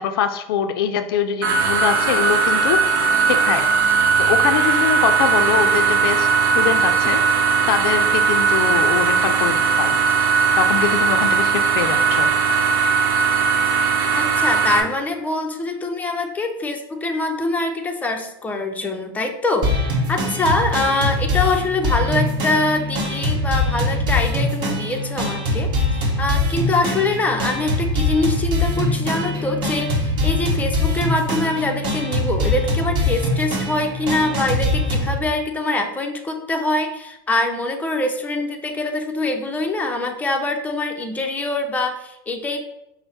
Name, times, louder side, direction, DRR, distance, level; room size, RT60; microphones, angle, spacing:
voice 1, 0.0-2.8 3.3-3.7 4.2-6.3 6.5-7.2 7.7-9.9 10.6-12.3, left 8 dB, 75° left, 8 dB, 0.4 m, -23 dB
sound 1, 1.4-14.8, right 5 dB, 75° right, 0.7 m, -18 dB
voice 2, 14.1-19.8 20.1-42.7, left 2 dB, 10° left, 3 dB, 0.6 m, -24 dB
sound 2, 19.6-35.2, left 1 dB, 40° right, 1.1 m, -22 dB
5.3 x 2.1 x 4.3 m, 0.83 s
hypercardioid pair, 105°, 12 cm